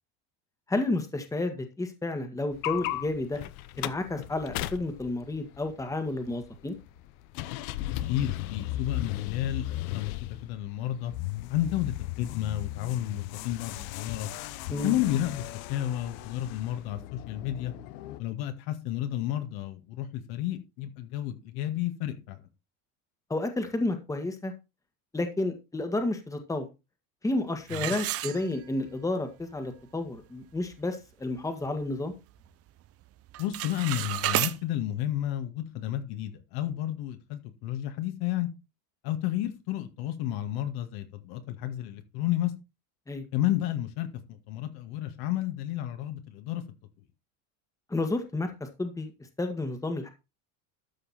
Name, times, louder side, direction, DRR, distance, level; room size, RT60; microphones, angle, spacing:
voice 1, 0.7-3.4 3.8-6.8 14.7-15.0 23.3-24.5 25.1-26.7 27.2-32.1 43.1-43.2 47.9-48.5 48.8-49.1 49.4-50.1, left 2 dB, 10° left, 7 dB, 1.7 m, -31 dB
sound 1, 2.5-18.2, left 15 dB, 80° left, 0.9 m, -37 dB
voice 2, 8.1-11.1 11.5-14.3 14.8-17.7 18.2-22.4 27.7-27.8 33.4-38.5 39.0-42.5 43.3-44.1 44.5-46.6, left 13 dB, 60° left, 7 dB, 2.0 m, -31 dB
sound 2, 27.7-28.9 29.4-29.5 30.1-30.2 30.5-30.8 31.3-32.4 32.7-33.0 33.3-34.6, right 14 dB, 35° right, 0.6 m, -32 dB
13.0 x 5.7 x 4.2 m, 0.26 s
supercardioid pair, 135°, 42 cm